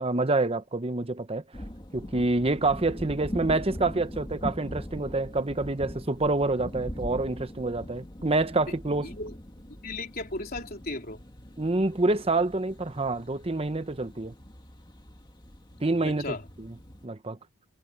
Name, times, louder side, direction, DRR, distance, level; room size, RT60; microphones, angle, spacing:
voice 1, 0.0-1.6 1.9-9.1 11.6-14.3 15.8-16.8 17.0-17.4, right 2 dB, 30° right, 0.9 m, -27 dB
sound 1, 1.5-17.1, equal, 25° left, 2.3 m, -41 dB
voice 2, 9.0-9.3 9.8-11.2 16.0-16.4, left 2 dB, 50° left, 3.6 m, -36 dB
head